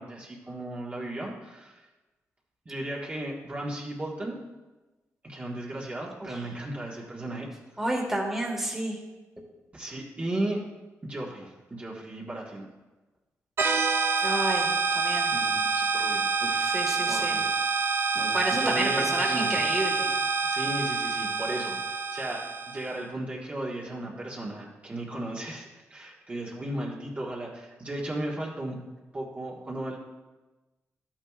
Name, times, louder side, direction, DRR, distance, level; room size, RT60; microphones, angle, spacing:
voice 1, 0.0-1.9 2.6-4.4 5.2-7.5 9.7-10.6 11.0-12.7 15.3-16.7 17.1-17.8 18.1-19.6 20.5-28.8 29.1-30.0, right 1 dB, 25° right, -3 dB, 1.4 m, -35 dB
voice 2, 7.8-9.0 14.2-15.3 16.6-17.4 18.3-20.2, right 1 dB, 5° right, -1 dB, 1.6 m, -30 dB
sound 1, 13.6-23.0, right 4 dB, 50° right, 0.6 m, -27 dB
12.5 x 8.9 x 2.4 m, 1.1 s
cardioid pair, 115°, 5 cm